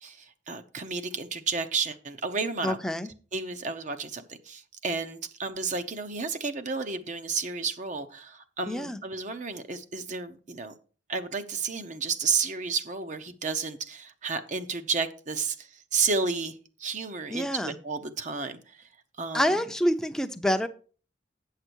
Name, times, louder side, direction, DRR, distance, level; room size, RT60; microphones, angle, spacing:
voice 1, 0.0-2.8 3.3-10.7 11.1-18.9 19.2-19.6, right 4 dB, 45° right, 8 dB, 0.7 m, -32 dB
voice 2, 2.6-3.1 8.7-9.0 17.3-17.7 19.3-20.7, equal, 5° left, 7 dB, 0.6 m, -27 dB
8.7 x 6.6 x 4.5 m, 0.38 s
head